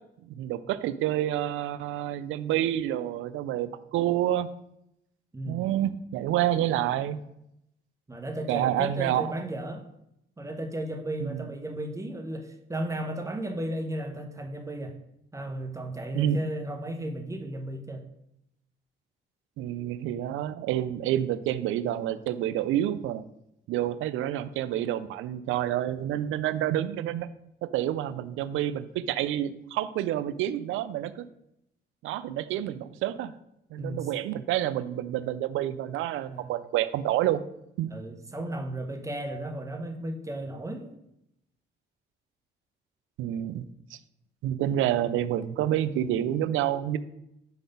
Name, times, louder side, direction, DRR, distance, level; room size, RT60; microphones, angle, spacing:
voice 1, 0.3-4.5 5.5-7.2 8.5-9.3 11.2-11.4 16.1-16.4 19.6-23.2 23.7-27.3 27.7-31.2 32.0-33.3 33.7-37.4 37.8-37.9 43.2-43.7 43.9-44.0 44.4-47.0, right 12 dB, 85° right, 14 dB, 0.4 m, -28 dB
voice 2, 8.1-9.8 10.4-14.9 15.3-18.1 33.8-34.1 36.3-36.5 37.8-40.9, right 1 dB, 15° right, 5 dB, 0.9 m, -34 dB
5.0 x 4.0 x 5.3 m, 0.80 s
cardioid pair, 90°, 20 cm